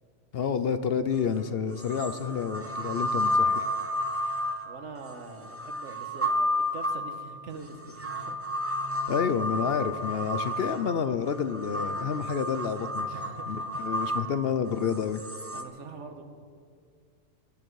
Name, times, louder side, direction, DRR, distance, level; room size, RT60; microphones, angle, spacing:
voice 1, 0.3-3.6 9.1-13.1 13.5-15.2, left 7 dB, 60° left, 11 dB, 0.8 m, -29 dB
sound 1, 1.1-1.2 1.8-15.6, left 1 dB, 15° right, 0.7 m, -31 dB
voice 2, 4.6-8.4 8.8-9.0 13.1-14.3 15.5-16.2, right 4 dB, 70° right, 6 dB, 1.6 m, -44 dB
22.5 x 10.5 x 4.7 m, 2.2 s
omnidirectional pair, 1.3 m